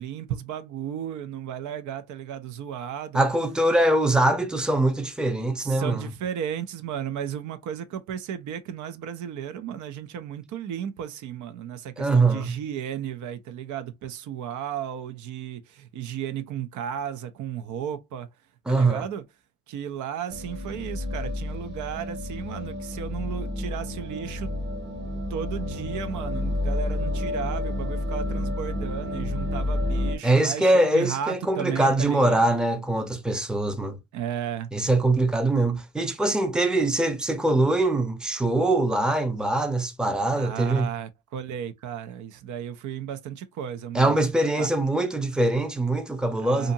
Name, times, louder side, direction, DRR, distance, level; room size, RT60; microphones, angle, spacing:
voice 1, 0.0-3.2 5.6-18.3 18.7-19.2 19.7-24.5 25.3-32.5 34.1-34.7 40.3-44.2 44.6-44.7 46.4-46.7, right 9 dB, 75° right, 0.5 m, -34 dB
voice 2, 3.1-6.1 12.0-12.6 18.7-19.0 30.2-34.0 34.7-40.9 43.9-46.7, right 2 dB, 5° right, 0.5 m, -23 dB
sound 1, 20.3-30.2, left 1 dB, 35° right, 1.0 m, -30 dB
2.7 x 2.5 x 2.6 m
cardioid pair, 90°, 30 cm